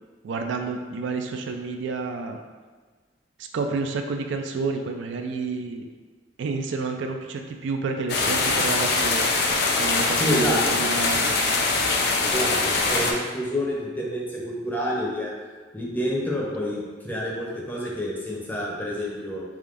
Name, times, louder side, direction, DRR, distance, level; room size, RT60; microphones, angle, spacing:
voice 1, 0.2-2.4 3.4-5.9 6.4-9.3 9.8-11.3, right 4 dB, 70° right, 4 dB, 0.3 m, -30 dB
sound 1, 8.1-13.1, left 3 dB, 60° left, 0.4 m, -23 dB
voice 2, 10.2-10.7 12.2-15.3 15.7-19.4, equal, 10° left, -4 dB, 0.6 m, -28 dB
3.6 x 3.4 x 2.5 m, 1.4 s
head